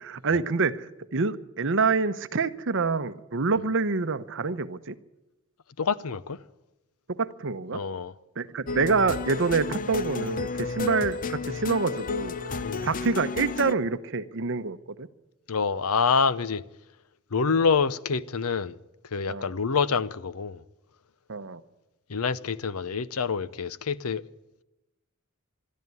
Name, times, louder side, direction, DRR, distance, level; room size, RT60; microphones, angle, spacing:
voice 1, 0.0-4.9 7.1-7.8 8.4-12.3 12.8-15.1 19.3-19.5 21.3-21.6, right 4 dB, 60° right, 0.9 m, -27 dB
voice 2, 5.8-6.4 7.7-8.2 10.8-10.9 12.6-12.9 15.5-16.6 17.3-18.8 19.1-20.6 22.1-24.2, left 5 dB, 75° left, 0.7 m, -26 dB
sound 1, 8.7-13.7, left 4 dB, 40° left, 0.6 m, -32 dB
21.5 x 13.0 x 9.5 m
head